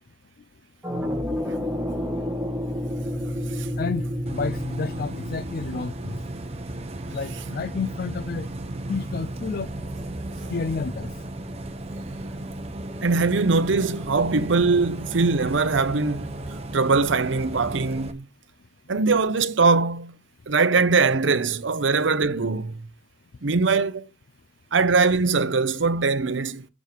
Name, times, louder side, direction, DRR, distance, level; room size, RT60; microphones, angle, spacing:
sound 1, 0.8-6.7, equal, 5° right, 1.6 m, -30 dB
voice 1, 3.8-6.2 7.1-8.5 8.9-9.7 10.5-11.1, left 4 dB, 50° left, 0.4 m, -30 dB
Bus, 4.3-18.1, right 1 dB, 30° right, 0.9 m, -35 dB
voice 2, 13.0-18.3 18.9-20.1 20.5-22.9 23.4-24.1 24.7-26.7, right 4 dB, 65° right, 0.7 m, -22 dB
7.2 x 6.7 x 4.4 m
head